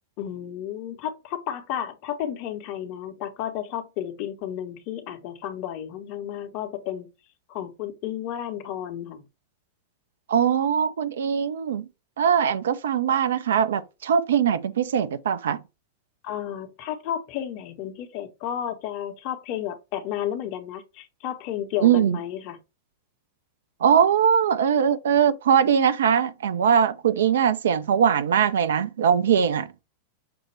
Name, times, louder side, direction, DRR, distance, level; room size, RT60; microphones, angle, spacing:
voice 1, 0.2-7.1 7.5-9.2 16.2-22.6, left 10 dB, 45° left, 0.7 m, -32 dB
voice 2, 10.3-11.8 12.2-15.6 21.8-22.2 23.8-29.7, right 8 dB, 60° right, 0.4 m, -21 dB
5.9 x 2.1 x 3.2 m
figure-of-eight pair, 90°, 0 cm